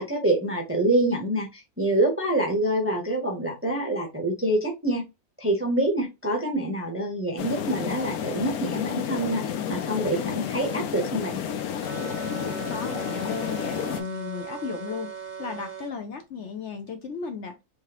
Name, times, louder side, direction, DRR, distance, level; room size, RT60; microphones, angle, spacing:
voice 1, 0.0-5.0 5.4-11.4, right 1 dB, 15° right, 0.5 m, -26 dB
sound 1, 7.4-14.0, left 9 dB, 80° left, 1.1 m, -31 dB
sound 2, 11.8-15.9, right 5 dB, 65° right, 0.3 m, -38 dB
voice 2, 12.7-17.6, left 5 dB, 65° left, 0.8 m, -35 dB
3.6 x 3.2 x 2.8 m
omnidirectional pair, 1.6 m